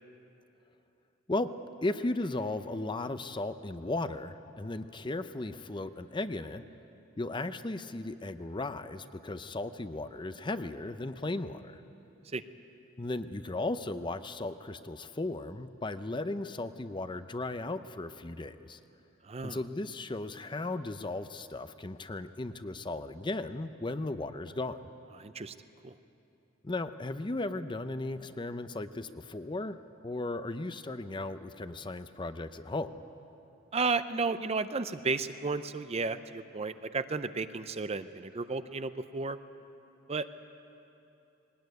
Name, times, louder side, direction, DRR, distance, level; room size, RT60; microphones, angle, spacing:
voice 1, 1.8-6.6 7.2-11.8 13.0-18.8 19.4-24.9 26.6-29.8 30.0-33.0, left 2 dB, 25° left, 11 dB, 0.6 m, -36 dB
voice 2, 19.2-19.6 25.2-25.5 25.8-25.9 33.7-39.4 40.1-40.3, right 4 dB, 30° right, 12 dB, 0.6 m, -33 dB
20.5 x 19.0 x 9.3 m, 2.9 s
head